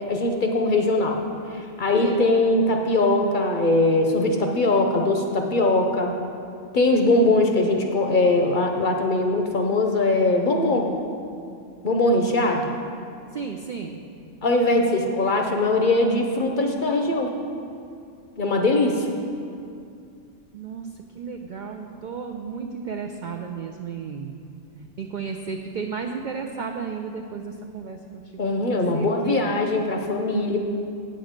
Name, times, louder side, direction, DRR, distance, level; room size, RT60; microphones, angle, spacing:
voice 1, 0.1-1.2 1.5-6.1 6.7-10.9 11.8-12.7 14.4-17.3 18.4-19.1 28.4-30.6, left 2 dB, 50° left, 3 dB, 0.7 m, -21 dB
voice 2, 13.3-14.0 20.5-20.9 21.2-24.3 24.8-28.0 28.3-29.5, right 5 dB, 65° right, 3 dB, 0.4 m, -33 dB
8.3 x 7.7 x 5.0 m, 2.5 s
omnidirectional pair, 1.3 m